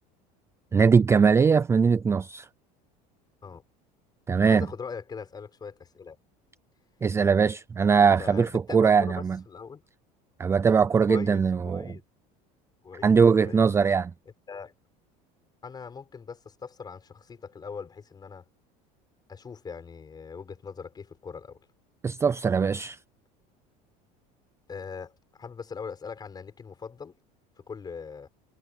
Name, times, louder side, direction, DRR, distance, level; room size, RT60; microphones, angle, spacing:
voice 1, 0.7-2.5 4.3-4.7 7.0-9.4 10.4-12.0 13.0-14.1 22.0-23.0, right 5 dB, 15° right, 0.4 m, -21 dB
voice 2, 4.5-6.2 8.0-9.8 11.1-12.0 12.8-13.1 13.4-13.7 14.5-14.7 15.6-18.4 19.3-21.6 24.7-27.2 27.7-28.3, left 5 dB, 25° left, 6.6 m, -41 dB
cardioid pair, 135°, 18 cm